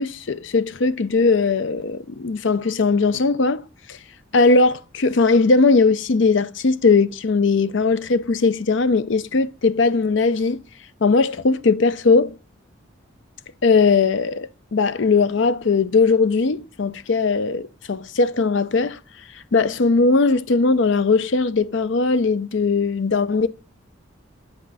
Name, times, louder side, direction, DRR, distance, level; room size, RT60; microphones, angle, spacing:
voice 1, 0.0-3.6 3.9-4.0 4.3-10.6 11.0-12.3 13.6-19.0 19.5-23.5, left 4 dB, 65° left, 0.5 m, -19 dB
9.5 x 3.8 x 5.5 m
head